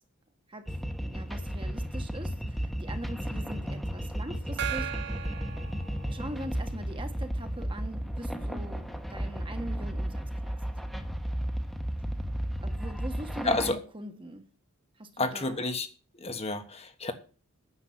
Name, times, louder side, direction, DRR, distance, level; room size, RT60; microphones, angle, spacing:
voice 1, 0.5-5.2 6.1-10.5 12.6-14.4 15.0-15.6, right 1 dB, 25° right, 1.3 m, -42 dB
sound 1, 0.7-13.7, equal, ahead, 1.2 m, -34 dB
Gong, 4.6-6.6, right 10 dB, 55° right, 0.8 m, -37 dB
voice 2, 13.4-13.8 15.2-15.9 16.2-17.1, left 3 dB, 30° left, 1.2 m, -30 dB
9.9 x 7.1 x 7.9 m
head